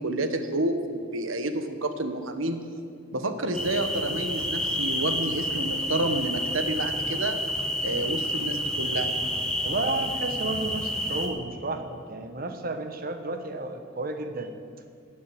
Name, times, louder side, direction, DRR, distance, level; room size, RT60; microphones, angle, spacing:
voice 1, 0.0-2.6 3.1-7.4 7.8-9.2, right 1 dB, 80° right, 8 dB, 1.3 m, -29 dB
sound 1, 3.5-11.3, equal, 5° left, 1.1 m, -29 dB
voice 2, 9.6-14.5, right 2 dB, 45° right, 7 dB, 1.2 m, -32 dB
16.5 x 9.5 x 7.8 m, 2.4 s
head